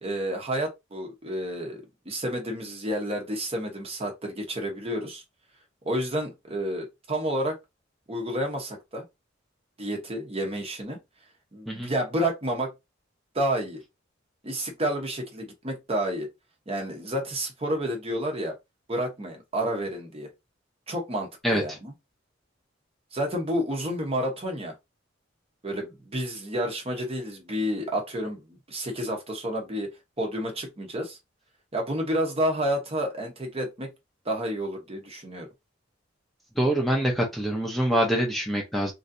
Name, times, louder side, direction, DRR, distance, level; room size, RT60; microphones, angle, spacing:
voice 1, 0.0-5.2 5.8-7.6 8.1-9.0 9.8-11.0 11.5-12.7 13.3-13.8 14.4-16.3 16.7-18.5 18.9-20.3 20.9-21.9 23.1-24.7 25.6-29.9 30.2-31.2 31.7-33.9 34.2-35.5, equal, 30° right, 0.8 m, -30 dB
voice 2, 36.6-38.9, right 1 dB, ahead, 0.6 m, -25 dB
3.1 x 2.6 x 2.6 m
head